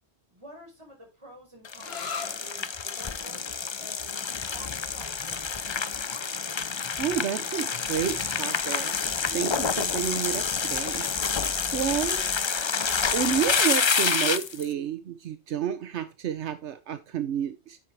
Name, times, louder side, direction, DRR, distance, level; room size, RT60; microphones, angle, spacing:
voice 1, 0.3-3.4 3.8-4.2 4.5-5.7, right 1 dB, 25° right, 0 dB, 5.3 m, -49 dB
sound 1, 1.7-14.7, left 5 dB, 35° left, 0.4 m, -28 dB
sound 2, 1.8-9.2, left 5 dB, 65° left, 1.5 m, -45 dB
voice 2, 7.0-8.9 9.3-11.4 11.7-12.3 13.1-17.8, right 9 dB, 80° right, 11 dB, 1.1 m, -30 dB
9.8 x 7.6 x 3.3 m, 0.28 s
omnidirectional pair, 1.2 m